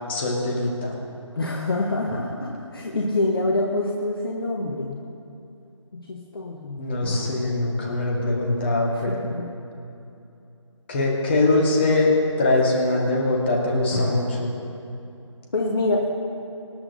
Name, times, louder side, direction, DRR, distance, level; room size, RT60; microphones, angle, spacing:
voice 1, 0.1-0.9 6.8-9.3 10.9-12.1 12.4-14.5, left 2 dB, 20° left, -2 dB, 1.6 m, -22 dB
voice 2, 1.4-5.0 5.9-6.9 9.1-9.5 15.5-16.0, left 2 dB, 45° left, -1 dB, 1.4 m, -26 dB
sound 1, 2.1-4.0 7.0-10.3 13.9-14.4, left 1 dB, 15° right, 2.2 m, -34 dB
25.0 x 10.0 x 2.8 m, 2.7 s
figure-of-eight pair, 160°, 16 cm